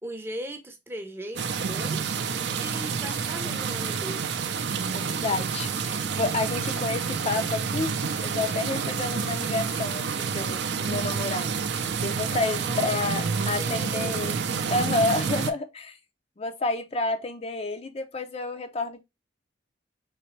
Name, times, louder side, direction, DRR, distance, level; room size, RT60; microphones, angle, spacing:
voice 1, 0.0-2.0 2.5-4.4 12.7-14.3, right 1 dB, 10° right, 0.6 m, -39 dB
sound 1, 1.4-15.5, right 5 dB, 60° right, 0.5 m, -29 dB
voice 2, 4.9-7.9 8.2-14.4 14.7-16.0 16.4-19.0, left 3 dB, 30° left, 0.5 m, -30 dB
3.9 x 3.3 x 3.1 m
head